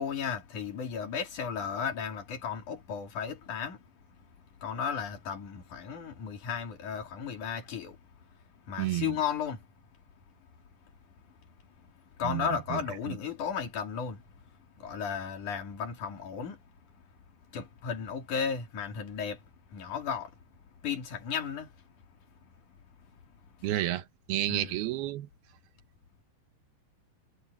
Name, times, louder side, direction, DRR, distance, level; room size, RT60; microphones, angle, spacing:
voice 1, 0.0-3.8 4.6-8.0 8.7-9.7 12.2-14.2 14.8-16.6 17.5-19.4 19.7-20.3 20.8-21.7 24.5-24.8, left 7 dB, 50° left, 3.6 m, -34 dB
voice 2, 8.8-9.2 12.2-12.8 13.1-13.2 23.6-25.3, right 14 dB, 70° right, 2.8 m, -31 dB
omnidirectional pair, 5.0 m